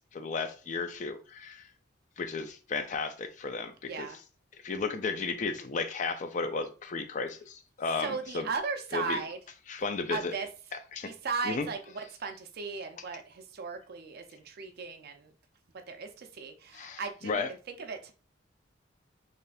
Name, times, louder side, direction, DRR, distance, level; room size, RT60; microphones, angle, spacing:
voice 1, 0.1-1.6 2.2-4.1 4.6-8.5 8.9-9.2 9.7-10.3 10.9-11.1 11.4-11.7 16.7-17.5, left 4 dB, 40° left, 0.4 m, -34 dB
voice 2, 3.8-4.2 8.0-9.4 10.1-10.5 11.0-15.3 15.7-18.1, right 4 dB, 55° right, 0.4 m, -37 dB
3.4 x 2.7 x 2.3 m
head